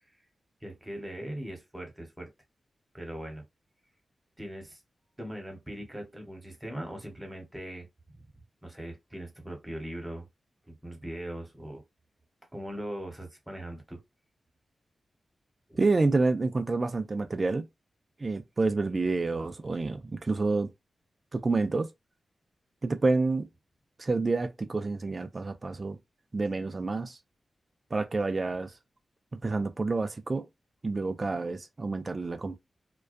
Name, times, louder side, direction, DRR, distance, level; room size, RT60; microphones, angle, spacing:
voice 1, 0.6-2.3 2.9-3.4 4.4-4.8 5.2-7.9 8.6-10.3 10.7-11.8 12.5-14.0 15.7-15.8, right 1 dB, 15° right, 1.1 m, -40 dB
voice 2, 15.8-17.7 18.2-20.7 21.3-21.9 22.8-23.5 24.0-26.0 26.3-27.2 27.9-28.7 29.4-30.4 30.8-32.6, right 3 dB, 35° right, 0.3 m, -28 dB
2.3 x 2.2 x 2.5 m
wide cardioid pair, 90°, 0 cm